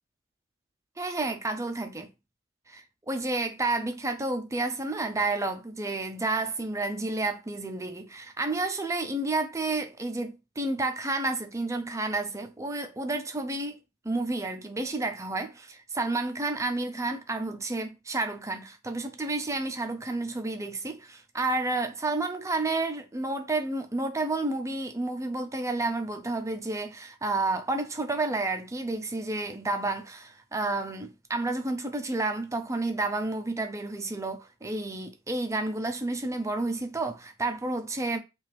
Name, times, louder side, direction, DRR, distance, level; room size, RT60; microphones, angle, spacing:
voice 1, 1.0-2.1 2.7-13.8 14.0-38.2, right 2 dB, 15° right, 0.5 m, -30 dB
5.6 x 2.4 x 3.4 m
head